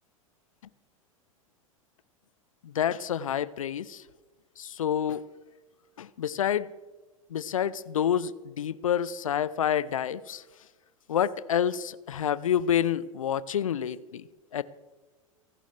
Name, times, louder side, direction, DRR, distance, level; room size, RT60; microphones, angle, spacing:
voice 1, 2.6-4.0 4.6-5.2 6.0-6.7 7.3-10.4 11.1-14.3 14.5-14.6, left 9 dB, 70° left, 0.7 m, -28 dB
29.5 x 11.5 x 3.4 m
figure-of-eight pair, 90°, 18 cm